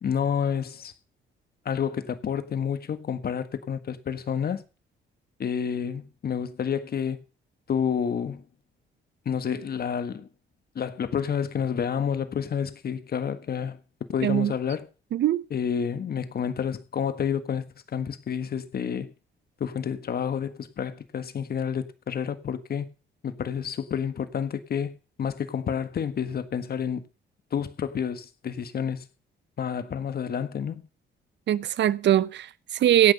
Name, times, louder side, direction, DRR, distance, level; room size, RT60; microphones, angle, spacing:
voice 1, 0.0-0.9 1.6-4.6 5.4-7.2 7.7-8.4 9.2-10.3 10.7-13.8 14.1-14.9 15.5-17.7 17.9-19.1 19.6-22.9 23.2-27.0 27.5-29.0 29.6-30.8, left 7 dB, 50° left, 1.5 m, -29 dB
voice 2, 14.2-14.5 15.1-15.4 31.5-33.1, right 11 dB, 65° right, 0.7 m, -22 dB
17.0 x 5.9 x 6.8 m
cardioid pair, 90°, 20 cm